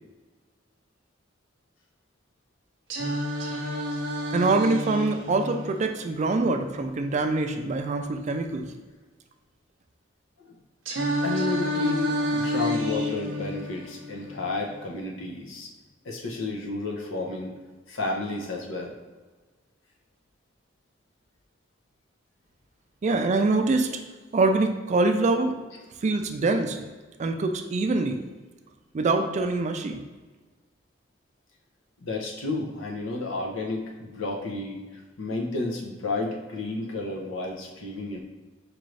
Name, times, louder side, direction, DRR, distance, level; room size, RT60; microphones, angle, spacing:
Singing, 2.9-6.9 10.9-14.9, equal, 75° right, 0.7 m, -30 dB
voice 1, 4.3-8.7 23.0-23.9 24.3-25.5 26.0-26.8 27.2-28.2 28.9-30.0, right 3 dB, 35° right, 5 dB, 0.3 m, -24 dB
voice 2, 11.2-15.7 16.0-17.5 17.9-18.9 32.0-38.2, left 2 dB, 80° left, 0 dB, 0.7 m, -32 dB
4.5 x 2.5 x 3.2 m, 1.3 s
head